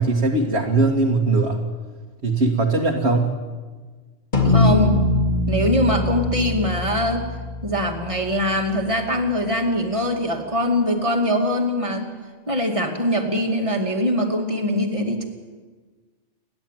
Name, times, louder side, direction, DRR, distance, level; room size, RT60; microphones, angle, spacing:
voice 1, 0.0-1.6 2.2-3.3, right 3 dB, 65° right, -2 dB, 2.1 m, -20 dB
sound 1, 4.3-8.9, left 2 dB, 40° left, 2.6 m, -22 dB
voice 2, 4.4-5.1 5.5-7.2 7.6-12.1 12.5-15.2, left 1 dB, 25° right, 2 dB, 2.6 m, -22 dB
29.0 x 11.0 x 9.3 m, 1.4 s
omnidirectional pair, 1.2 m